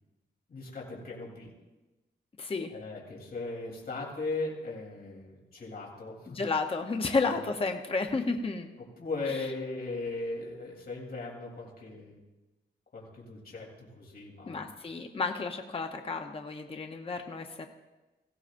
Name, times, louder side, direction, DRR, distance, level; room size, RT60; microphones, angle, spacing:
voice 1, 0.5-1.5 2.7-6.4 7.2-7.4 8.8-12.2 12.9-14.6, left 3 dB, 50° left, -3 dB, 3.4 m, -38 dB
voice 2, 2.4-2.7 6.3-8.7 14.5-17.7, left 4 dB, 30° left, 5 dB, 0.8 m, -32 dB
18.0 x 16.0 x 2.6 m, 1.1 s
wide cardioid pair, 120°, 19 cm